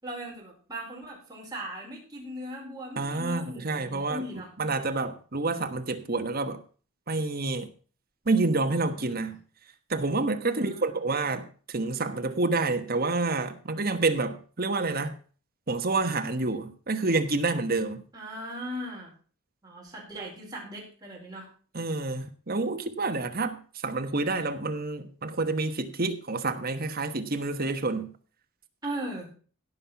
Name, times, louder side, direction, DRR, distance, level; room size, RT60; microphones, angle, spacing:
voice 1, 0.0-4.5 8.8-9.3 10.5-11.0 18.1-19.1 19.6-21.5 28.8-29.3, equal, 15° right, -3 dB, 4.7 m, -39 dB
voice 2, 3.0-4.2 4.6-6.6 7.1-7.7 8.3-9.4 9.9-15.1 15.7-18.0 21.7-28.1, right 3 dB, 40° right, 7 dB, 1.2 m, -28 dB
16.5 x 5.6 x 5.8 m, 0.40 s
head